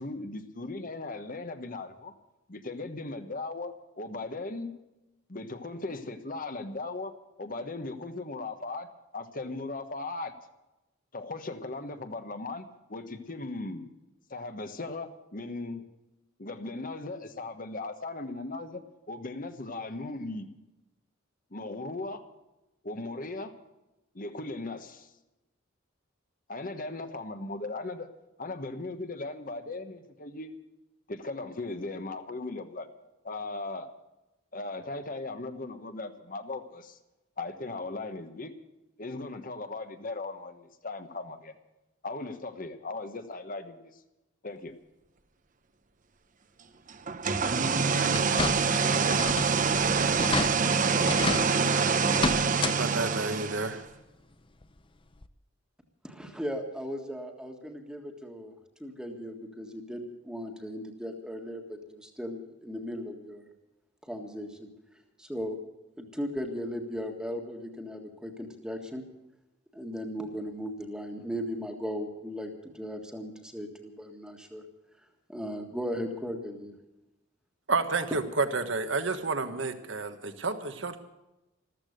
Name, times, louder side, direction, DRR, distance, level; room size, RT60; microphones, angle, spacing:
voice 1, 0.0-2.1 2.5-4.7 5.3-7.1 7.4-8.9 9.1-10.3 11.1-13.9 14.3-15.8 16.4-18.8 19.1-20.5 21.5-22.2 22.8-23.5 24.1-25.1 26.5-28.1 28.4-30.5 31.1-32.9 33.2-33.9 34.5-37.0 37.4-38.5 39.0-41.5 42.0-44.0 44.4-44.7, left 2 dB, 45° left, 8 dB, 1.3 m, -38 dB
sound 1, 47.1-53.8, right 5 dB, 40° right, 0.8 m, -25 dB
sound 2, 48.1-48.8 49.1-49.6 49.9-50.0 50.2-50.5 51.1-51.4 52.1-52.8 53.1-53.2 54.6-54.7 55.2-55.3, left 3 dB, 25° left, 0.6 m, -30 dB
voice 2, 52.8-53.8 77.7-81.0, right 3 dB, 65° right, 9 dB, 1.4 m, -30 dB
voice 3, 56.0-58.5 58.8-63.5 64.0-64.7 65.2-65.6 66.0-69.0 69.7-74.6 75.3-76.8, equal, 5° right, 3 dB, 1.7 m, -37 dB
14.5 x 13.5 x 6.6 m, 0.98 s
head